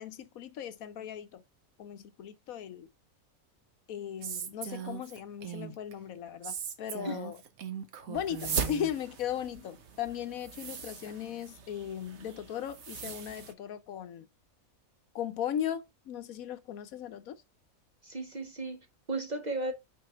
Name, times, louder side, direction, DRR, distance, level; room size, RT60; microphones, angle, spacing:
voice 1, 0.0-1.4 1.8-2.9 3.9-7.4 8.1-14.3 15.1-17.4, left 9 dB, 80° left, 1.2 m, -37 dB
Female speech woman speaking, 4.2-5.9 6.4-8.9, right 8 dB, 85° right, 1.3 m, -40 dB
sound 1, 8.1-13.5, right 6 dB, 55° right, 1.2 m, -39 dB
voice 2, 18.0-19.7, right 2 dB, 40° right, 0.8 m, -35 dB
5.8 x 4.8 x 4.3 m
omnidirectional pair, 1.4 m